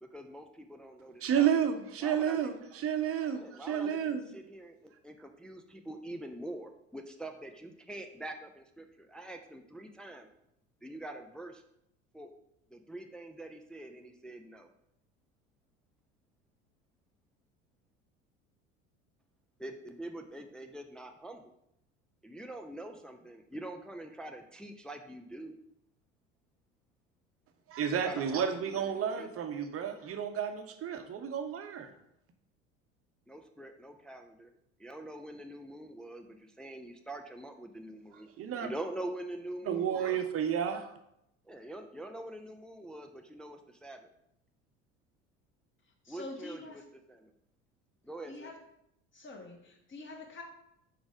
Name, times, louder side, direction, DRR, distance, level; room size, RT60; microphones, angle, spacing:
voice 1, 0.0-1.7 2.0-2.5 3.3-10.3 10.8-11.6 12.1-12.3 12.7-14.7 19.6-21.5 22.2-25.6 27.9-29.3 33.3-34.5 34.8-38.3 38.6-40.2 41.5-44.1 46.1-46.8 47.1-47.3 48.0-48.5, right 1 dB, ahead, 5 dB, 0.3 m, -44 dB
voice 2, 1.2-4.2 27.7-31.9 38.4-38.7 39.7-41.0, right 8 dB, 35° right, 7 dB, 0.8 m, -31 dB
voice 3, 46.0-46.8 48.3-48.6 49.1-50.4, left 2 dB, 30° left, 1 dB, 1.5 m, -45 dB
4.8 x 4.1 x 4.9 m, 0.78 s
hypercardioid pair, 70°, 39 cm